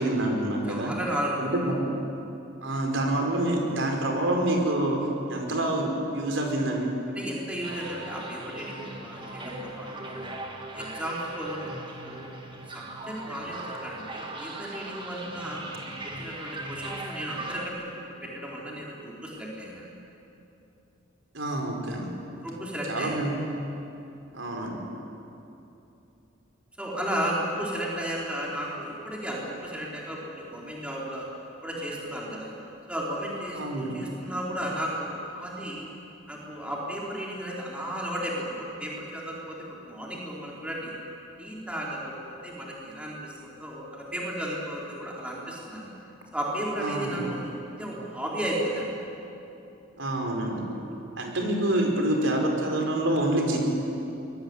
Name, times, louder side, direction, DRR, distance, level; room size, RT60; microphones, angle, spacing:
voice 1, 0.0-0.9 1.4-1.9 2.6-5.0 5.3-6.9 21.3-22.1 22.9-23.3 24.3-24.8 33.6-34.0 46.8-47.3 49.9-50.6 51.2-53.6, right 1 dB, 70° right, 1 dB, 5.0 m, -27 dB
voice 2, 0.7-1.4 7.1-10.4 10.7-12.3 12.7-15.6 16.0-19.9 22.4-23.1 26.8-31.3 31.6-32.5 32.9-35.9 36.3-40.9 41.4-45.9 46.3-47.5 47.8-48.9, equal, 5° right, -4 dB, 4.3 m, -34 dB
sound 1, 7.6-17.7, right 2 dB, 25° right, 2.7 m, -39 dB
24.5 x 21.5 x 9.8 m, 2.8 s
head